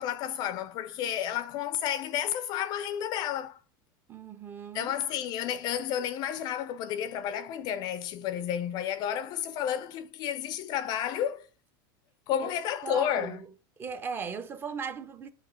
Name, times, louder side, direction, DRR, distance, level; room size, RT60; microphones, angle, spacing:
voice 1, 0.0-3.6 4.7-11.5 12.3-13.4, left 10 dB, 40° left, 0.4 m, -31 dB
voice 2, 4.1-4.9 12.4-12.6 12.8-13.5 13.8-15.3, right 5 dB, 20° right, 0.6 m, -37 dB
5.9 x 3.1 x 5.6 m
supercardioid pair, 155°, 12 cm